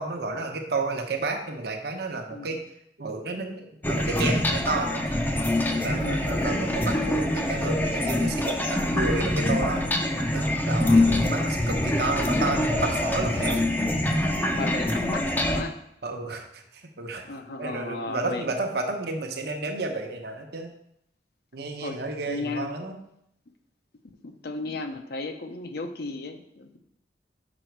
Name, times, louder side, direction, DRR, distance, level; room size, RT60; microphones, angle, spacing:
voice 1, 0.0-2.6 3.0-5.2 5.8-9.8 10.2-13.7 16.0-16.6 17.0-17.2 17.6-20.7 21.5-22.9, right 3 dB, 60° right, 3 dB, 0.9 m, -31 dB
sound 1, 3.8-15.6, left 1 dB, 10° left, 0.5 m, -25 dB
voice 2, 5.9-6.4 10.8-11.1 14.6-15.8 17.2-18.5 21.8-22.0 22.3-22.8 24.2-26.8, left 3 dB, 60° left, 6 dB, 0.7 m, -35 dB
6.1 x 5.1 x 4.6 m, 0.74 s
head